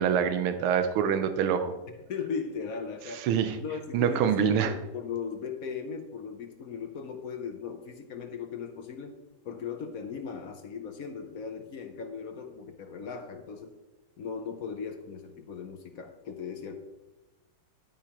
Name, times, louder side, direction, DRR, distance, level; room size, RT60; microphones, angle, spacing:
voice 1, 0.0-1.7 3.2-3.6 3.9-4.7, right 8 dB, 85° right, 8 dB, 1.6 m, -25 dB
voice 2, 2.1-9.2 9.4-13.7 14.2-16.8, left 6 dB, 60° left, 6 dB, 0.9 m, -38 dB
11.5 x 8.8 x 2.9 m, 1.1 s
omnidirectional pair, 2.3 m